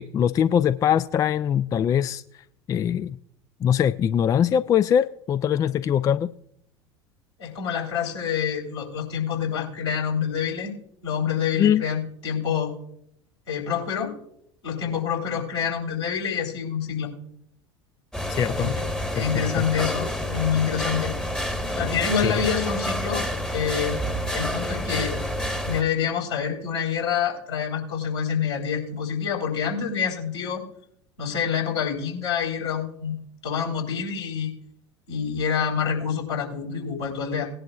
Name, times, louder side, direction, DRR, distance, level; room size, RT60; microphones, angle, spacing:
voice 1, 0.0-2.2 2.7-3.2 3.6-6.3 11.6-11.8 18.3-18.7 19.2-19.3 19.6-19.7 22.2-22.3, left 9 dB, 25° left, 0.3 m, -22 dB
voice 2, 7.4-10.7 11.0-12.7 13.5-14.1 14.6-17.1 18.6-18.8 19.1-21.1 21.7-23.3 23.5-24.0 24.3-25.1 25.7-30.6 31.2-33.1 33.4-34.5 35.1-37.5, left 7 dB, 70° left, 3.8 m, -27 dB
sound 1, 18.1-25.8, equal, 5° left, 1.1 m, -28 dB
19.0 x 11.0 x 2.3 m
figure-of-eight pair, 75°, 15 cm